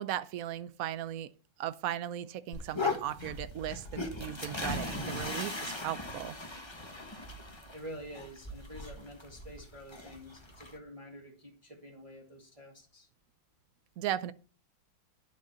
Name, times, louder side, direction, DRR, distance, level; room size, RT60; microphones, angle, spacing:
voice 1, 0.0-1.3 1.6-6.4 14.0-14.3, right 11 dB, 75° right, 0.8 m, -37 dB
sound 1, 2.5-10.8, left 2 dB, 15° left, 1.1 m, -39 dB
voice 2, 7.7-13.1, equal, 15° right, 2.2 m, -48 dB
10.5 x 5.4 x 6.9 m
omnidirectional pair, 2.2 m